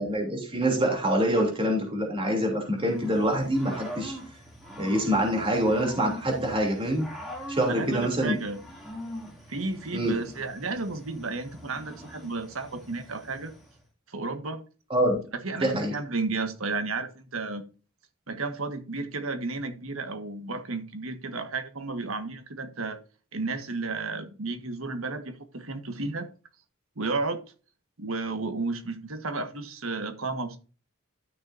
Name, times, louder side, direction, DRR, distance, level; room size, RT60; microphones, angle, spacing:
voice 1, 0.0-4.1 4.8-7.1 7.5-8.4 9.9-10.2 14.9-15.2 15.6-15.9, right 1 dB, 25° right, 2.9 m, -25 dB
Growling / Cricket, 2.8-13.7, left 1 dB, ahead, 2.6 m, -42 dB
voice 2, 7.7-8.6 9.5-13.5 14.1-14.6 15.4-17.6 18.3-23.0 23.3-26.3 27.0-27.4 28.0-30.6, right 3 dB, 85° right, 1.5 m, -32 dB
12.5 x 6.5 x 2.6 m
head